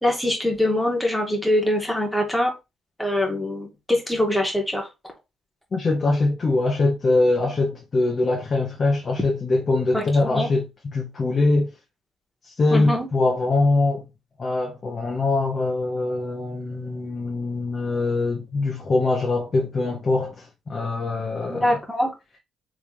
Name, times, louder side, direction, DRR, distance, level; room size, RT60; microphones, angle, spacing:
voice 1, 0.0-2.5 3.0-4.9 9.9-10.5 12.7-13.1 21.5-22.1, left 1 dB, ahead, 1.7 m, -23 dB
voice 2, 5.7-10.7 10.9-11.7 12.4-14.0 14.4-21.7, left 2 dB, 40° left, 1.0 m, -23 dB
3.7 x 3.4 x 3.2 m
cardioid pair, 90°, 0 cm